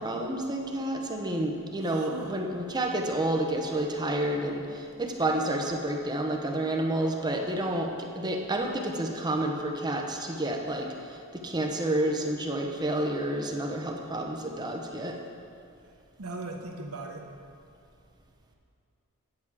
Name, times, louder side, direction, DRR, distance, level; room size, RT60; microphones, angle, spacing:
voice 1, 0.0-15.2, right 1 dB, 20° right, 2 dB, 0.8 m, -30 dB
voice 2, 1.8-2.3 16.2-17.3, right 2 dB, 75° right, 2 dB, 1.0 m, -39 dB
9.7 x 7.2 x 4.7 m, 2.4 s
head